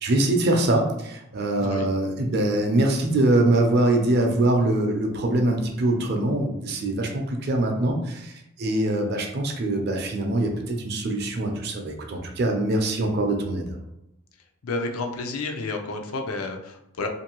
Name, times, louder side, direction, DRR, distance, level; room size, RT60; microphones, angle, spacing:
voice 1, 0.0-13.8, right 1 dB, 50° right, 2 dB, 0.5 m, -23 dB
voice 2, 1.6-1.9 14.6-17.1, left 3 dB, 85° left, 4 dB, 0.4 m, -30 dB
2.6 x 2.6 x 2.9 m, 0.82 s
head